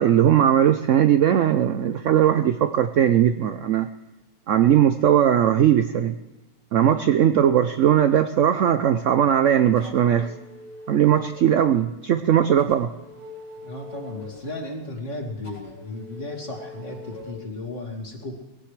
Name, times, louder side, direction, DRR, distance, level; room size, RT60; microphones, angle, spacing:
voice 1, 0.0-3.9 4.5-6.1 6.7-10.3 10.9-12.9, right 10 dB, 80° right, 9 dB, 0.6 m, -19 dB
sound 1, 9.7-11.7 12.6-14.6 15.4-17.3, left 2 dB, 60° left, 4.5 m, -42 dB
voice 2, 13.6-18.4, left 2 dB, 40° left, 1 dB, 2.7 m, -35 dB
21.0 x 16.5 x 3.3 m, 1.1 s
omnidirectional pair, 2.0 m